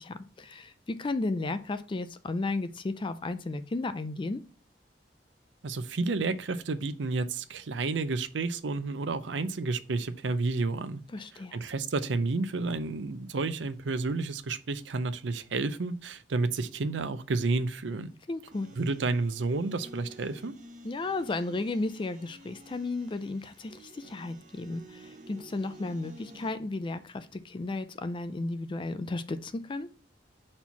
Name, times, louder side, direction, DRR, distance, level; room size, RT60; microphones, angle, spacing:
voice 1, 0.0-4.4 11.1-11.6 18.3-18.7 20.8-29.9, left 2 dB, 30° left, 11 dB, 0.4 m, -34 dB
voice 2, 5.6-11.0 11.5-18.1 18.8-20.5, right 3 dB, 80° right, 11 dB, 0.6 m, -30 dB
sound 1, 18.5-26.5, right 1 dB, 45° right, 1.0 m, -51 dB
4.3 x 4.3 x 5.6 m, 0.38 s
head